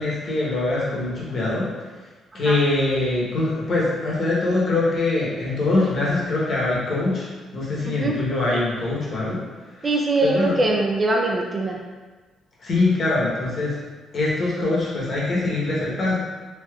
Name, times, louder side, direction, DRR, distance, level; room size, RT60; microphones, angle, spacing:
voice 1, 0.0-1.7 2.3-9.4 9.7-9.9 10.2-10.6 12.6-13.9 14.1-16.2, left 2 dB, 50° left, -6 dB, 1.0 m, -23 dB
voice 2, 7.9-8.2 9.8-11.8, right 2 dB, 30° right, 0 dB, 0.4 m, -22 dB
3.4 x 2.5 x 2.3 m, 1.3 s
cardioid pair, 90°, 0 cm